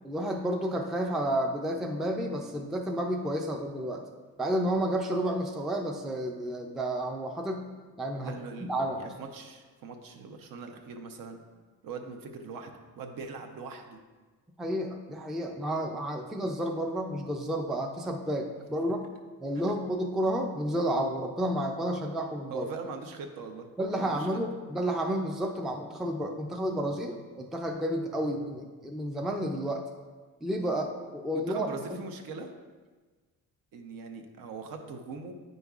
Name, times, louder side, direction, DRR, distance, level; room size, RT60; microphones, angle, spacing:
voice 1, 0.0-4.1 4.4-7.7 8.0-9.1 14.6-19.1 19.4-22.7 23.8-29.8 30.4-31.7, right 1 dB, ahead, 2 dB, 0.3 m, -31 dB
voice 2, 8.2-11.4 11.8-14.0 19.5-19.7 22.5-23.7 24.0-24.3 31.3-32.5 33.7-35.3, right 4 dB, 70° right, 5 dB, 0.8 m, -41 dB
9.1 x 5.2 x 2.4 m, 1.4 s
cardioid pair, 145°, 35 cm